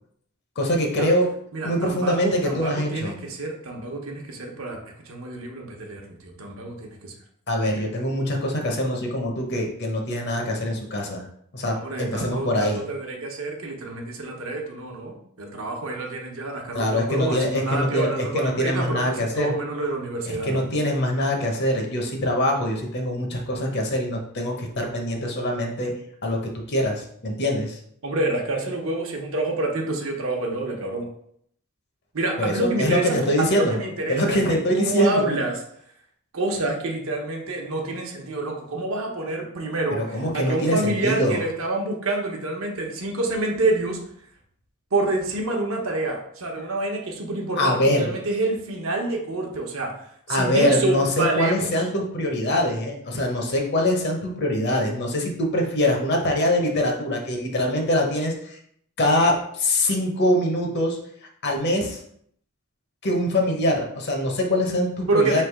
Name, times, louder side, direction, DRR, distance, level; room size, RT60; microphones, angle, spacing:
voice 1, 0.6-1.3 1.6-3.1 7.5-11.2 11.5-12.8 16.7-19.5 20.3-25.9 26.2-27.8 32.4-33.7 34.1-35.3 39.9-41.4 47.6-48.1 50.3-58.6 59.0-61.0 61.4-62.0 63.0-65.4, left 1 dB, 50° left, 2 dB, 0.8 m, -24 dB
voice 2, 1.5-7.1 7.6-7.8 11.7-20.6 28.0-31.1 32.1-35.5 36.3-44.0 44.9-49.9 50.3-51.7 65.1-65.4, right 2 dB, 70° right, 1 dB, 0.9 m, -27 dB
3.4 x 2.8 x 4.6 m, 0.67 s
head